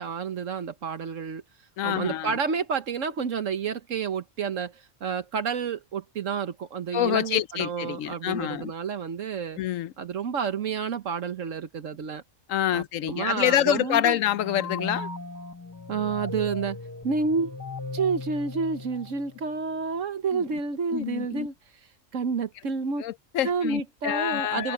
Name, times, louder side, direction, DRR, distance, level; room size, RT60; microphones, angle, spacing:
voice 1, 0.0-1.4 1.8-9.6 10.0-12.2 12.7-14.2 15.9-16.8 17.0-17.6 17.9-21.5 22.1-23.0 23.4-24.7, right 5 dB, 75° right, 1.5 m, -29 dB
voice 2, 1.8-2.3 6.9-8.7 9.6-9.9 12.5-15.1 20.3-20.4 20.9-21.5 23.0-24.7, left 12 dB, 80° left, 1.0 m, -27 dB
sound 1, 14.2-19.6, left 3 dB, 20° left, 0.5 m, -37 dB
omnidirectional pair, 1.3 m